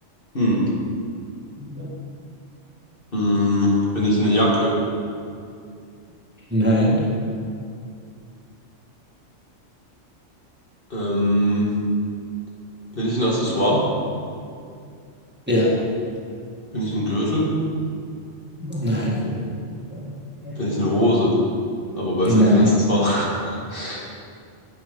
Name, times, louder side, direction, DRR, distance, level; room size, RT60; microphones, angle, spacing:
voice 1, 0.3-0.6 3.1-4.7 10.9-11.7 12.9-13.8 16.7-17.5 20.6-21.4 21.9-23.3 23.7-24.0, equal, 45° left, -5 dB, 2.3 m, -21 dB
voice 2, 1.6-1.9 6.5-7.1 15.5-15.9 18.6-19.5 19.9-20.1 20.4-21.1 22.3-22.8, equal, 10° right, -5 dB, 1.7 m, -21 dB
10.5 x 8.8 x 5.3 m, 2.3 s
omnidirectional pair, 1.3 m